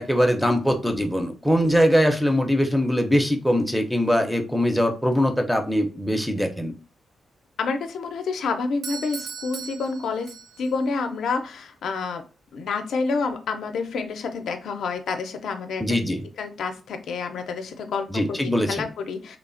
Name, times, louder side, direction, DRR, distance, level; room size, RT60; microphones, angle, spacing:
voice 1, 0.0-6.7 15.8-16.2 18.1-18.9, equal, ahead, 5 dB, 0.4 m, -22 dB
voice 2, 7.6-12.2 12.5-15.8 16.4-19.4, left 4 dB, 80° left, 6 dB, 0.4 m, -28 dB
Doorbell, 8.8-10.8, right 6 dB, 75° right, 0.3 m, -38 dB
3.0 x 2.0 x 2.5 m, 0.34 s
wide cardioid pair, 140°, 0 cm